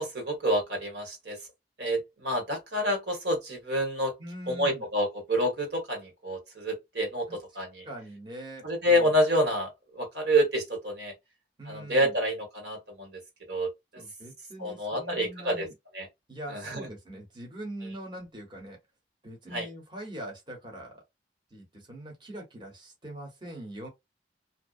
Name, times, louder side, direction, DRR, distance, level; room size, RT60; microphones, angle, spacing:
voice 1, 0.0-1.4 1.8-4.1 4.5-7.9 8.6-11.1 11.7-13.2 13.5-13.7 14.6-15.7 15.9-16.1 16.5-16.9 19.5-19.7, equal, 70° right, 1.2 m, -28 dB
voice 2, 4.2-4.9 7.3-7.4 7.8-9.1 11.6-12.1 13.9-15.7 16.3-18.8 19.2-21.0 21.5-23.9, right 1 dB, 25° right, 0.9 m, -42 dB
2.6 x 2.0 x 2.4 m
head